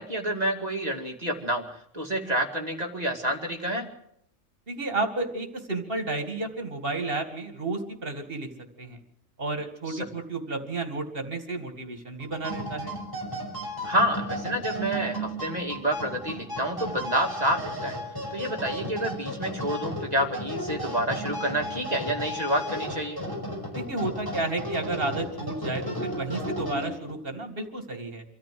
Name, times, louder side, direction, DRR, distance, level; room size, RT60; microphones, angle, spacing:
voice 1, 0.0-1.6 1.9-3.9 9.9-10.1 13.8-18.0 18.3-23.2, right 1 dB, 35° right, 3 dB, 2.5 m, -28 dB
voice 2, 4.7-8.5 8.8-9.0 9.4-12.9 23.7-28.2, right 2 dB, 50° right, 6 dB, 2.5 m, -32 dB
sound 1, 12.2-27.2, equal, 15° left, 5.5 m, -34 dB
25.5 x 13.5 x 7.7 m, 0.75 s
omnidirectional pair, 1.3 m